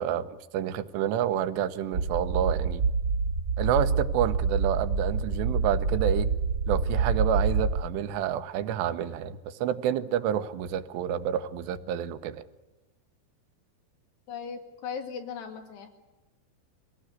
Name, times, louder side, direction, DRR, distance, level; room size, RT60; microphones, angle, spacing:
voice 1, 0.0-2.8 3.6-6.3 6.7-12.4, right 10 dB, 85° right, 10 dB, 3.1 m, -29 dB
sound 1, 1.9-7.8, right 4 dB, 50° right, 1.4 m, -27 dB
voice 2, 14.3-15.9, left 6 dB, 80° left, 4 dB, 4.2 m, -38 dB
23.5 x 17.5 x 9.7 m, 1.1 s
omnidirectional pair, 4.8 m